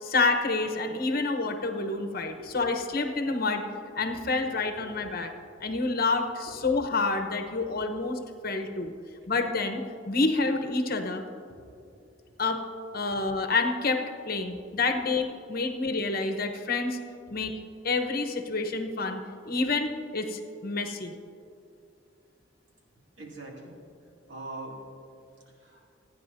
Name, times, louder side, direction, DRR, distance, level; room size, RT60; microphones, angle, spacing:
voice 1, 0.0-3.6 4.0-5.3 5.6-8.9 9.3-11.2 12.4-12.6 12.9-17.0 17.3-17.5 17.8-21.1, left 3 dB, 50° left, 5 dB, 1.0 m, -28 dB
voice 2, 23.2-23.8 24.3-24.8 25.6-25.8, right 2 dB, 65° right, -2 dB, 2.6 m, -42 dB
28.5 x 9.8 x 2.7 m, 2.5 s
head